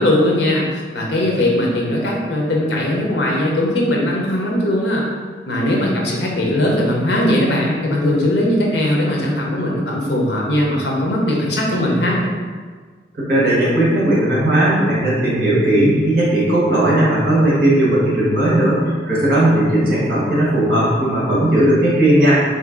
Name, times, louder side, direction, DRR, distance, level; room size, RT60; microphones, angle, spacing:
voice 1, 0.0-5.0 5.4-12.3, left 1 dB, 70° left, -2 dB, 0.7 m, -19 dB
voice 2, 13.2-22.3, right 1 dB, 55° right, -6 dB, 1.2 m, -16 dB
3.1 x 2.8 x 3.7 m, 1.5 s
head